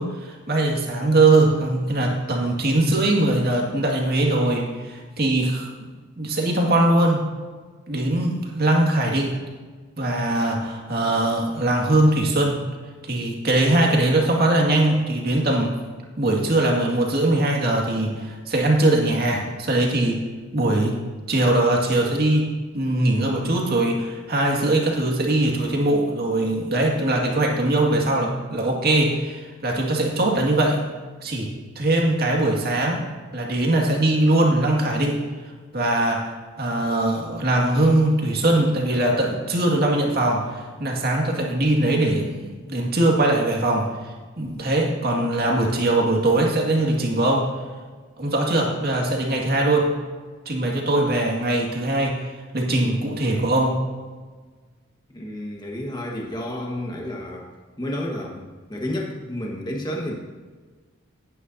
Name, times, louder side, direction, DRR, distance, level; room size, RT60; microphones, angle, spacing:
voice 1, 0.0-5.9 6.2-7.2 7.9-9.4 10.0-12.6 13.0-15.8 16.2-20.2 20.5-21.0 21.3-30.8 31.2-31.5 31.8-33.0 33.3-35.2 35.7-43.9 44.4-47.5 48.2-49.9 50.5-52.3 52.5-53.8, right 2 dB, 50° right, 0 dB, 2.0 m, -21 dB
voice 2, 55.1-57.5 57.8-60.1, left 1 dB, 20° left, -1 dB, 1.5 m, -31 dB
16.0 x 9.9 x 2.8 m, 1.4 s
head